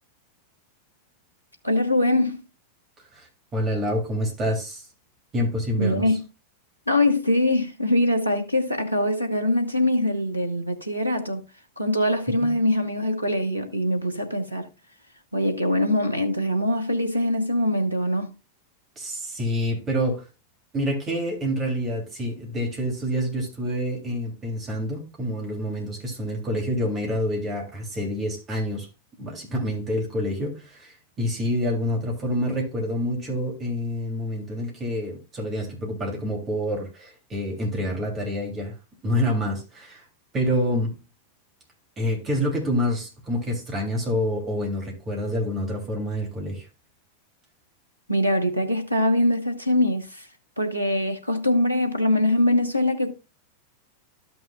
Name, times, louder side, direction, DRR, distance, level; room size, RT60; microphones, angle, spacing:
voice 1, 1.6-2.4 5.8-6.2 6.9-11.4 11.8-14.7 15.3-18.3 48.1-50.3 50.6-53.1, left 1 dB, 90° right, 1.1 m, -23 dB
voice 2, 3.1-4.8 5.3-6.1 12.4-12.5 19.0-20.2 20.7-28.9 29.2-38.7 39.0-40.0 40.3-41.0 42.0-46.7, equal, 25° right, 3.1 m, -27 dB
13.0 x 6.0 x 2.4 m
figure-of-eight pair, 90°, 0 cm